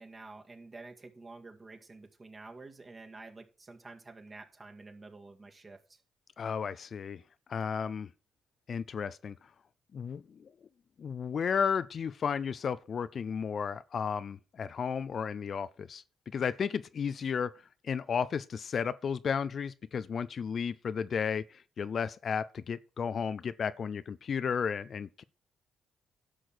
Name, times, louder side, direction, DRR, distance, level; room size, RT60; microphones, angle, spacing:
voice 1, 0.0-6.0, right 3 dB, 30° right, 2.0 m, -49 dB
voice 2, 6.4-7.2 7.5-8.1 8.7-9.4 9.9-10.5 11.0-16.0 16.3-17.5 17.8-25.2, left 6 dB, 50° left, 0.5 m, -33 dB
11.5 x 6.3 x 6.1 m
cardioid pair, 90°, 0 cm